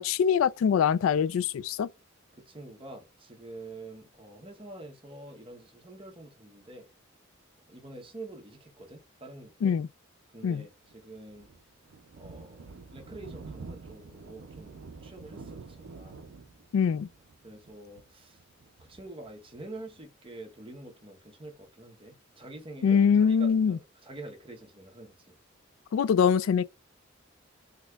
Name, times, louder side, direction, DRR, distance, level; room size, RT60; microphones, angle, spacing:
voice 1, 0.0-1.9 9.6-9.9 10.4-10.6 16.7-17.1 22.8-23.8 25.9-26.7, left 7 dB, 80° left, 0.3 m, -23 dB
voice 2, 2.3-6.9 7.7-9.8 10.3-11.5 12.2-16.2 17.4-18.4 18.8-25.4, right 2 dB, 25° right, 1.0 m, -46 dB
Thunder, 10.9-20.0, right 4 dB, 75° right, 0.5 m, -47 dB
4.1 x 2.8 x 2.3 m
head